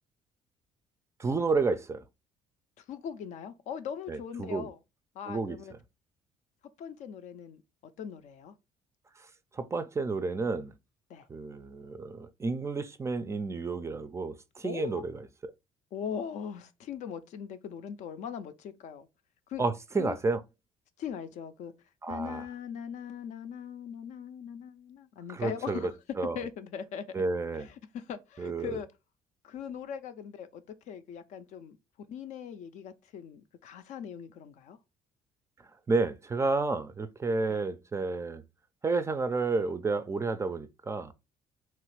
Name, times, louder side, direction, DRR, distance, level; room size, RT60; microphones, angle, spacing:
voice 1, 1.2-2.0 4.1-4.7 5.3-5.6 9.6-10.7 11.3-15.1 19.6-20.4 22.0-22.4 25.3-25.8 26.2-26.4 27.1-27.7 28.4-28.8 35.9-38.4 38.8-41.1, right 3 dB, 20° right, 0.3 m, -31 dB
voice 2, 2.8-4.8 5.1-5.7 6.8-7.6 8.0-8.5 11.1-11.3 14.6-15.1 15.9-19.1 19.5-19.6 20.0-20.2 21.0-21.7 22.1-26.0 26.3-27.1 27.6-28.9 29.4-31.8 32.1-34.8 37.5-37.6, left 7 dB, 65° left, 0.4 m, -40 dB
2.9 x 2.4 x 3.1 m
supercardioid pair, 80°, 13 cm